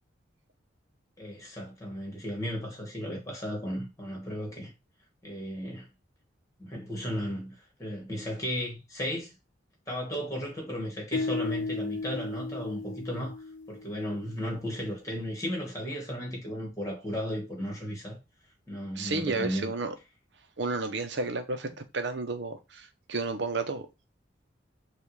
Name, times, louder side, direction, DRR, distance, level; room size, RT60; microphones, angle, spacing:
voice 1, 1.2-4.7 5.2-5.9 6.6-9.3 9.9-13.4 13.7-18.2 18.7-19.7, equal, 15° left, 1.5 m, -35 dB
sound 1, 11.1-14.3, left 3 dB, 65° left, 0.4 m, -35 dB
voice 2, 19.0-19.9 20.6-23.9, right 3 dB, 65° right, 0.7 m, -32 dB
5.5 x 2.4 x 3.1 m
head